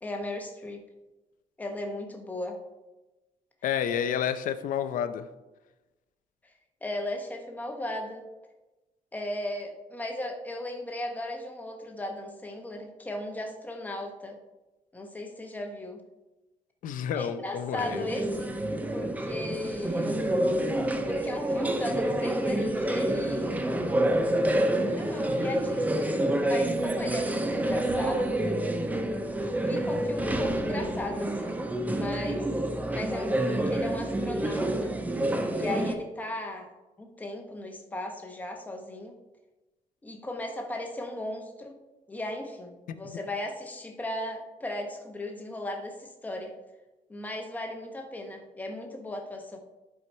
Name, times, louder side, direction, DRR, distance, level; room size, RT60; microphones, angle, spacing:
voice 1, 0.0-0.8 1.6-2.6 6.8-8.2 9.1-14.4 14.9-16.0 17.1-18.5 18.9-20.2 21.1-23.7 24.8-26.1 26.4-28.3 29.6-32.5 32.9-34.9 35.5-36.7 37.0-39.2 40.0-41.8 42.1-46.6 47.1-49.6, left 1 dB, 10° left, 3 dB, 0.9 m, -36 dB
voice 2, 3.6-5.2 16.8-18.0 42.9-43.2, left 8 dB, 65° left, 11 dB, 0.6 m, -30 dB
sound 1, 17.8-35.9, right 1 dB, 10° right, 0.5 m, -28 dB
11.0 x 4.7 x 4.4 m, 1.1 s
cardioid pair, 180°, 15 cm